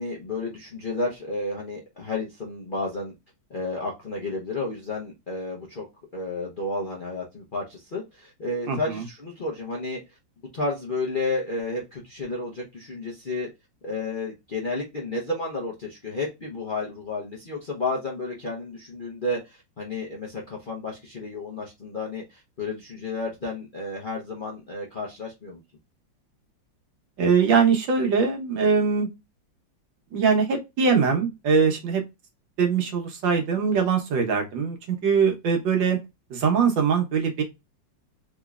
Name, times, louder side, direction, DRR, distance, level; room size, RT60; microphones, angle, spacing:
voice 1, 0.0-3.1 3.5-5.8 6.1-10.0 10.5-13.5 13.8-25.6, left 2 dB, 45° left, 0.7 m, -31 dB
voice 2, 8.7-9.0 27.2-29.1 30.1-32.0 32.6-36.0 36.3-37.4, right 5 dB, 75° right, 1.7 m, -22 dB
3.8 x 3.0 x 2.3 m
omnidirectional pair, 2.0 m